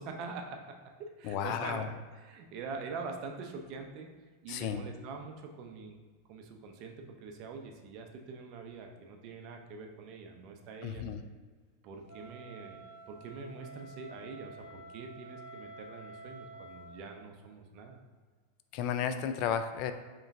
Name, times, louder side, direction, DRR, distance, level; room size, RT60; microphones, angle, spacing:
voice 1, 0.0-1.9 2.2-4.1 4.4-6.0 6.3-11.1 11.8-12.8 13.1-18.0, right 4 dB, 50° right, 3 dB, 0.6 m, -44 dB
voice 2, 1.2-1.9 4.5-4.8 10.8-11.2 18.7-19.9, left 8 dB, 50° left, 9 dB, 0.3 m, -33 dB
Wind instrument woodwind instrument, 12.1-17.1, right 2 dB, 75° left, 1.4 m, -50 dB
4.9 x 3.0 x 2.6 m, 1.4 s
hypercardioid pair, 115°, 0 cm